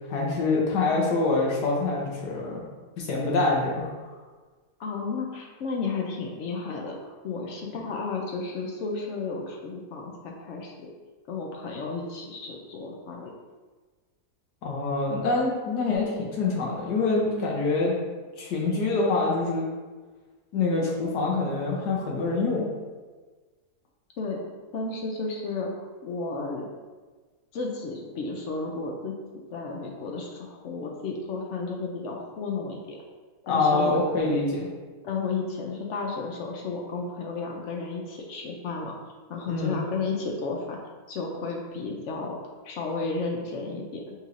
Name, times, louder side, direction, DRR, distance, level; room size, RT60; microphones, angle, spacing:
voice 1, 0.1-2.6 3.0-3.9 14.6-17.9 18.4-19.7 20.5-22.7 33.5-34.7 39.5-39.7, left 3 dB, 90° left, -3 dB, 1.4 m, -25 dB
voice 2, 4.8-10.9 11.3-13.3 24.2-24.4 24.7-26.7 27.5-29.1 29.5-33.0 33.5-34.0 35.0-38.9 39.3-40.8 41.1-42.4 42.6-44.1, left 4 dB, 70° left, 0 dB, 0.7 m, -33 dB
5.3 x 3.1 x 2.5 m, 1.3 s
omnidirectional pair, 1.7 m